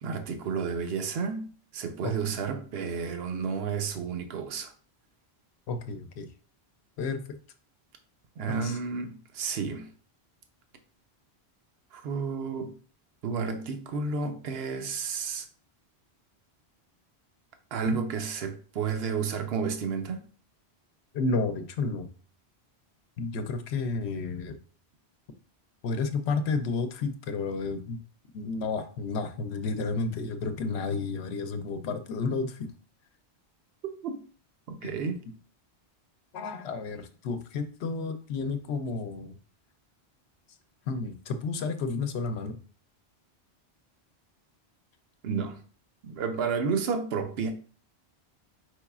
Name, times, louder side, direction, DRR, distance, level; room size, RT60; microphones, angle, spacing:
voice 1, 0.0-4.7 8.4-9.9 11.9-12.7 13.2-15.5 17.7-20.3 33.8-34.2 34.7-35.2 45.2-45.6 46.0-47.5, right 5 dB, 70° right, 0.9 m, -31 dB
voice 2, 2.0-2.3 5.7-6.3 7.0-7.2 8.5-8.7 17.9-18.0 21.1-22.1 23.2-24.6 25.8-28.0 28.3-32.7 34.8-34.9 36.3-39.3 40.9-42.6, left 4 dB, 80° left, 0.9 m, -31 dB
4.7 x 3.9 x 2.4 m
omnidirectional pair, 1.1 m